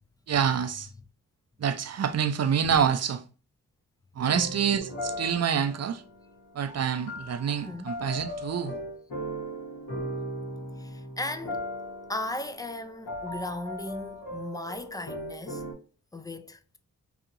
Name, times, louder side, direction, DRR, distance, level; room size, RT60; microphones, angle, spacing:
voice 1, 0.3-0.9 1.6-3.2 4.1-6.0 6.5-8.7, right 7 dB, 50° right, 0.5 m, -27 dB
sound 1, 4.2-15.7, equal, 70° left, 1.4 m, -38 dB
voice 2, 10.8-11.6 12.1-15.6 16.1-16.8, left 2 dB, 10° left, 0.3 m, -37 dB
2.8 x 2.7 x 2.5 m
cardioid pair, 50°, 34 cm